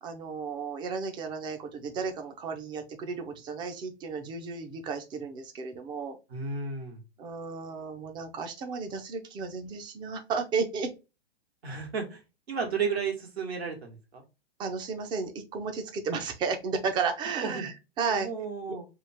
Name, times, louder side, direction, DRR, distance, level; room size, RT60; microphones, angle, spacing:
voice 1, 0.0-6.2 7.2-10.9 14.6-18.3, right 5 dB, 15° right, 6 dB, 0.5 m, -33 dB
voice 2, 6.3-7.0 11.6-12.2 12.5-14.2 17.4-17.7 18.1-18.9, right 5 dB, 85° right, 1 dB, 1.8 m, -33 dB
3.6 x 2.4 x 4.2 m, 0.27 s
hypercardioid pair, 135°, 31 cm